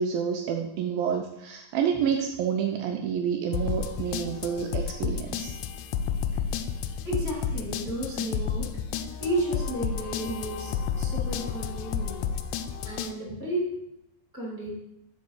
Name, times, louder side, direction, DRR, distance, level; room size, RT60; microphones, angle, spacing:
voice 1, 0.0-5.5, right 7 dB, 85° right, 3 dB, 2.1 m, -28 dB
sound 1, 3.5-13.1, left 7 dB, 85° left, 2.6 m, -31 dB
voice 2, 7.0-8.7 9.2-12.2 12.8-13.8 14.3-14.7, right 1 dB, ahead, -5 dB, 1.8 m, -32 dB
5.8 x 5.2 x 6.4 m, 0.84 s
omnidirectional pair, 4.7 m